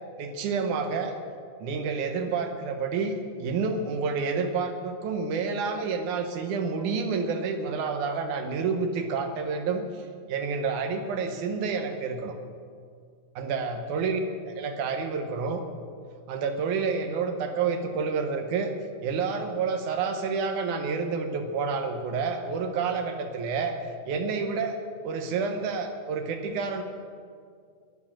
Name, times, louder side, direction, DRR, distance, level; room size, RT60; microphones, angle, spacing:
voice 1, 0.2-1.2 1.6-12.4 13.4-15.6 16.3-18.7 19.0-23.8 24.1-24.8 25.0-26.8, right 5 dB, 75° right, 6 dB, 2.4 m, -29 dB
21.5 x 7.5 x 7.4 m, 2.2 s
omnidirectional pair, 3.6 m